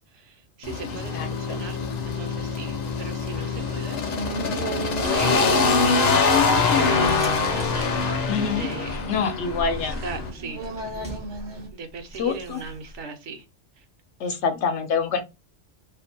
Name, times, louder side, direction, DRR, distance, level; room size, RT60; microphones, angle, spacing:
voice 1, 0.0-1.8 2.1-4.1 4.6-6.1 6.5-8.1 8.6-9.0 9.6-10.6 11.7-13.4, right 4 dB, 75° right, 1.0 m, -38 dB
sound 1, 0.6-10.3, left 4 dB, 55° left, 0.5 m, -24 dB
voice 2, 1.1-1.6 8.3-8.7 9.1-10.0 12.2-12.6 14.2-15.2, left 6 dB, 70° left, 0.9 m, -26 dB
sound 2, 1.5-11.7, right 3 dB, 50° right, 0.7 m, -37 dB
sound 3, 4.9-13.0, right 1 dB, 10° right, 0.3 m, -40 dB
2.6 x 2.1 x 2.5 m
omnidirectional pair, 1.2 m